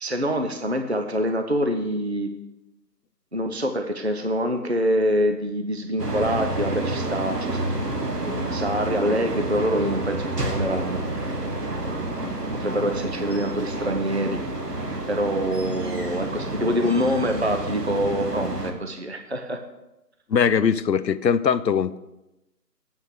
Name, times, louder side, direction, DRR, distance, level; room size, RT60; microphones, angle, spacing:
voice 1, 0.0-2.3 3.3-7.6 8.5-11.4 11.8-12.2 12.5-14.4 14.7-19.6, equal, 45° right, 5 dB, 0.5 m, -25 dB
sound 1, 6.0-18.7, right 2 dB, 70° right, 1.4 m, -29 dB
voice 2, 20.3-22.0, left 7 dB, 85° left, 15 dB, 0.7 m, -21 dB
8.2 x 5.8 x 6.3 m, 0.94 s
figure-of-eight pair, 170°, 49 cm